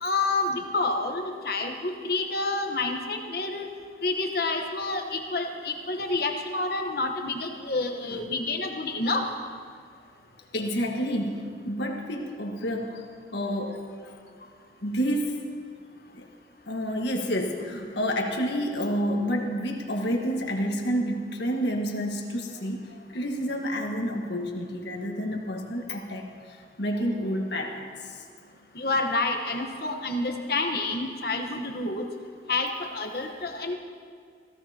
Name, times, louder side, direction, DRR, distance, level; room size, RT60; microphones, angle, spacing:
voice 1, 0.0-3.7 4.0-9.3 28.7-32.0 32.5-33.7, left 3 dB, 60° left, 4 dB, 1.2 m, -28 dB
voice 2, 10.5-13.1 13.3-14.2 14.8-15.3 16.1-16.3 16.7-22.9 23.1-26.3 26.8-28.1, equal, 80° left, 1 dB, 1.5 m, -29 dB
17.0 x 15.5 x 2.9 m, 2.1 s
head